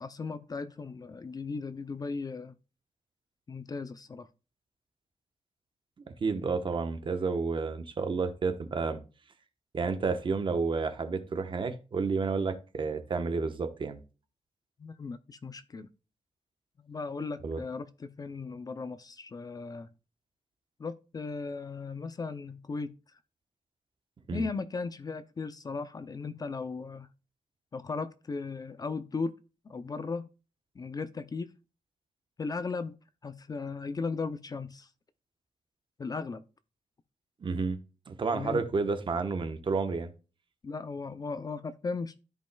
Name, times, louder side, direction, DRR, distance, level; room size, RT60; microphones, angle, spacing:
voice 1, 0.0-2.5 3.5-4.3 14.8-15.9 16.9-19.9 20.8-23.0 24.3-27.1 27.7-29.3 29.7-30.3 30.8-31.5 32.4-32.9 33.2-34.9 36.0-36.4 38.3-38.6 40.6-42.2, left 4 dB, 30° left, 0.4 m, -37 dB
voice 2, 6.2-9.0 9.7-14.0 17.4-17.6 24.3-24.5 37.4-37.8 38.1-40.1, right 4 dB, 40° right, 1.0 m, -30 dB
13.5 x 5.3 x 2.2 m
wide cardioid pair, 175°, 13 cm